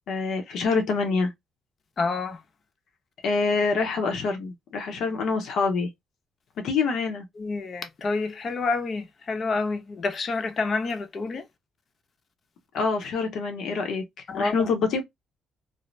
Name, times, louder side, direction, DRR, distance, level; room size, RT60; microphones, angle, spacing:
voice 1, 0.1-1.3 3.2-5.9 6.6-7.2 12.7-14.0 14.3-15.0, left 4 dB, 75° left, 0.8 m, -25 dB
voice 2, 2.0-2.4 7.4-11.4 14.3-14.7, left 3 dB, 50° left, 0.7 m, -28 dB
2.6 x 2.1 x 3.1 m
cardioid pair, 90°, 0 cm